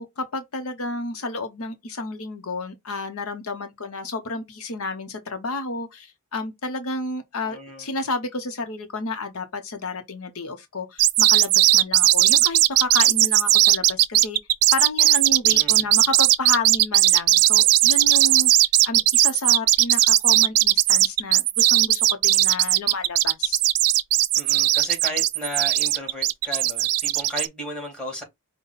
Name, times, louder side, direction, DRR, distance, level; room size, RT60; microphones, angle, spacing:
voice 1, 0.0-14.4 14.7-18.5 18.8-23.6, left 3 dB, 70° left, 0.8 m, -31 dB
voice 2, 7.4-7.9 15.4-15.9 24.3-28.2, equal, 5° left, 2.1 m, -34 dB
sound 1, 11.0-27.5, right 15 dB, 75° right, 0.4 m, -18 dB
5.6 x 2.2 x 3.9 m
head